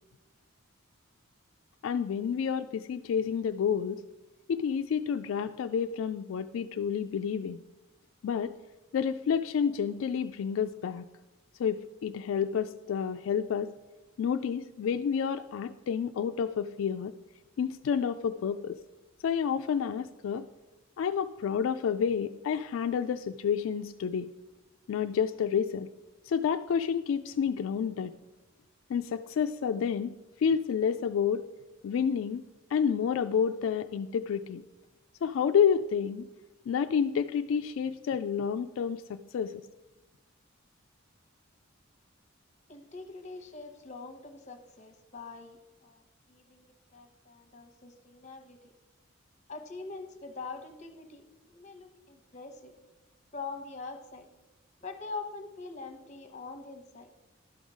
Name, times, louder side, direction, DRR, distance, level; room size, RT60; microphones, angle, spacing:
voice 1, 1.8-4.0 4.5-7.6 8.2-8.5 8.9-11.1 11.6-13.7 14.2-17.1 17.6-18.8 19.2-20.4 21.0-24.3 24.9-25.9 26.2-28.1 28.9-30.1 30.4-31.4 31.8-32.4 32.7-34.6 35.2-36.3 36.7-39.6, left 7 dB, 75° left, 8 dB, 0.3 m, -29 dB
voice 2, 42.7-46.0 46.3-46.6 46.9-48.7 49.5-51.2 51.5-52.8 53.3-54.3 54.8-57.1, left 4 dB, 35° left, 6 dB, 0.9 m, -43 dB
11.5 x 5.4 x 4.9 m, 1.1 s
head